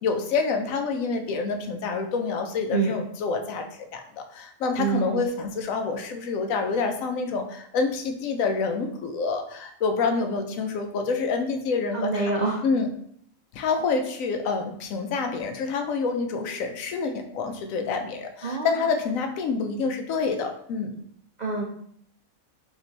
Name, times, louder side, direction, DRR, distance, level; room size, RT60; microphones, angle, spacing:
voice 1, 0.0-3.7 3.9-12.2 12.6-12.9 13.5-21.0, left 4 dB, 75° left, 5 dB, 1.0 m, -27 dB
voice 2, 4.8-5.3 11.9-12.6 18.4-18.8 21.4-21.6, right 4 dB, 70° right, -1 dB, 0.4 m, -26 dB
4.7 x 2.9 x 2.7 m, 0.65 s
omnidirectional pair, 1.4 m